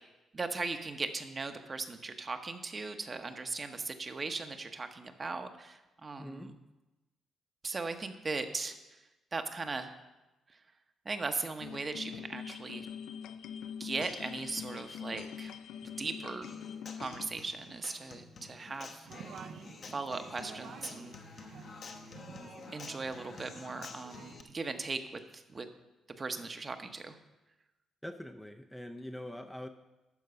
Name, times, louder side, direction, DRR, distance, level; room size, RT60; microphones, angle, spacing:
voice 1, 0.3-6.6 7.6-8.8 9.3-9.9 11.0-12.9 13.8-15.5 15.8-16.5 17.0-19.1 19.9-21.2 22.7-25.7 26.2-27.1, right 3 dB, 30° right, 7 dB, 0.8 m, -38 dB
voice 2, 6.2-6.5 28.0-29.7, left 1 dB, 5° left, 5 dB, 0.5 m, -43 dB
sound 1, 11.6-17.3, left 8 dB, 85° left, 0.4 m, -43 dB
Human voice / Acoustic guitar, 16.4-24.4, left 4 dB, 50° left, 0.9 m, -49 dB
sound 2, 19.0-24.3, right 6 dB, 65° right, 0.7 m, -51 dB
12.0 x 4.5 x 6.7 m, 1.0 s
cardioid pair, 100°, 0 cm